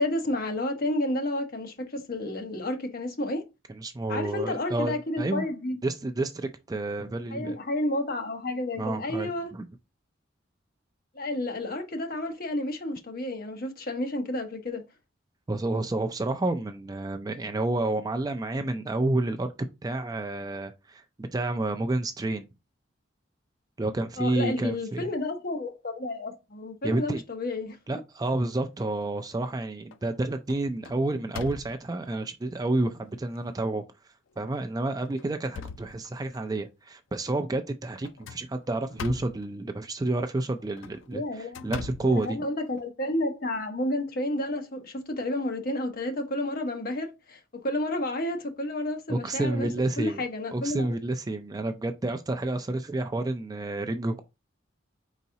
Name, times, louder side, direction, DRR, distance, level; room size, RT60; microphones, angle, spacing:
voice 1, 0.0-3.4 4.1-5.8 7.3-9.5 11.1-14.8 24.2-27.8 41.1-41.7 42.0-49.7 50.0-50.9, left 1 dB, 50° left, 1.0 m, -31 dB
voice 2, 3.7-5.5 5.8-7.6 8.8-9.7 15.5-19.5 19.8-22.5 23.8-25.1 26.8-27.2 27.9-33.8 34.4-42.4 49.1-50.2 50.5-54.2, right 2 dB, 20° right, 0.3 m, -30 dB
sound 1, 28.9-29.5 29.9-30.2 30.5-32.1 32.8-32.9 33.3-33.4 34.3-34.6 35.0-36.5 38.0-39.5 40.6-42.9, left 6 dB, 75° left, 0.4 m, -42 dB
4.7 x 4.1 x 2.7 m
head